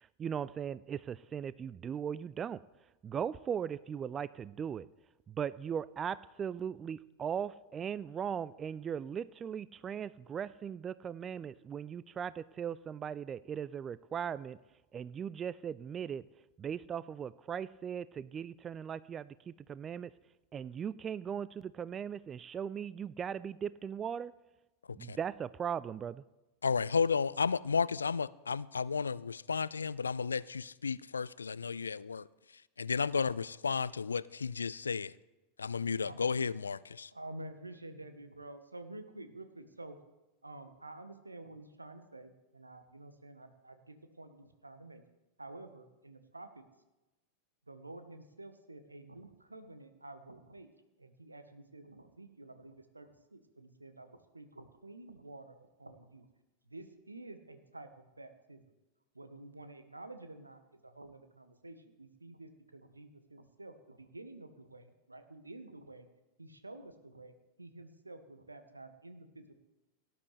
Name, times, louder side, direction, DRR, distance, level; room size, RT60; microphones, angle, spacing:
voice 1, 0.0-2.6 3.0-4.9 5.3-14.6 14.9-16.2 16.6-20.1 20.5-24.3 25.0-26.2, right 8 dB, 25° right, 0.3 m, -38 dB
voice 2, 26.6-32.3 32.8-35.1 35.6-37.1, left 5 dB, 75° left, 0.3 m, -33 dB
voice 3, 37.1-40.0 40.4-45.0 45.4-46.6 47.7-50.7 51.0-56.3 56.7-58.6 59.1-66.1 66.4-69.6, right 2 dB, 80° right, 1.1 m, -50 dB
18.0 x 10.5 x 3.3 m
figure-of-eight pair, 90°, 0 cm